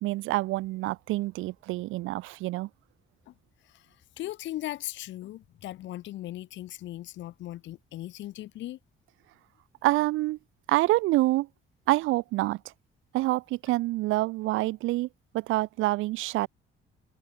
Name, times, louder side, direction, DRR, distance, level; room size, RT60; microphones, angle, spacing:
voice 1, 0.0-2.7 9.8-10.4 10.7-11.5 11.9-12.6 13.1-15.1 15.3-16.5, right 18 dB, 85° right, 0.4 m, -27 dB
voice 2, 4.2-8.8, left 14 dB, 70° left, 0.5 m, -38 dB
cardioid pair, 90°, 20 cm